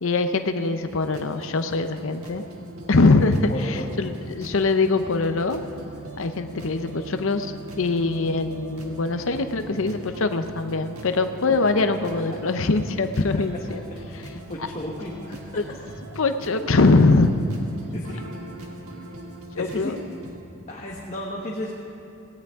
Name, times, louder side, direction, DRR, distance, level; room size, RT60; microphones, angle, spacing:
voice 1, 0.0-2.4 2.9-5.6 6.2-13.8 15.5-15.6 16.2-17.3 19.5-20.0, left 3 dB, 65° left, 8 dB, 0.7 m, -22 dB
sound 1, 0.9-20.4, right 2 dB, 85° right, 1.6 m, -41 dB
voice 2, 3.5-4.0 14.1-14.2 14.5-15.4 17.9-18.2 19.6-20.0 20.7-21.8, left 1 dB, 30° left, -3 dB, 1.2 m, -33 dB
17.5 x 17.0 x 3.6 m, 3.0 s
head